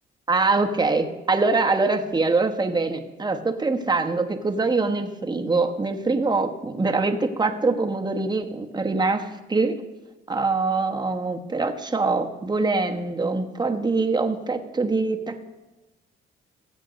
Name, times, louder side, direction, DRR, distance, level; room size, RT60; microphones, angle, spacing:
voice 1, 0.3-9.8 10.3-15.5, right 3 dB, 20° right, 5 dB, 1.1 m, -24 dB
16.0 x 7.6 x 5.2 m, 1.1 s
cardioid pair, 90°, 20 cm